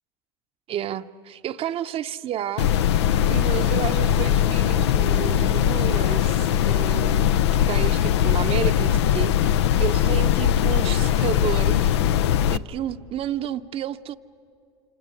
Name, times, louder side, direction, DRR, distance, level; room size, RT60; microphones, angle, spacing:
voice 1, 0.7-2.7 3.3-9.5 9.8-12.0 12.5-14.2, right 10 dB, 45° right, 0.7 m, -31 dB
sound 1, 2.6-12.6, left 10 dB, 85° left, 0.5 m, -20 dB
27.0 x 26.0 x 8.4 m
hypercardioid pair, 90°, 14 cm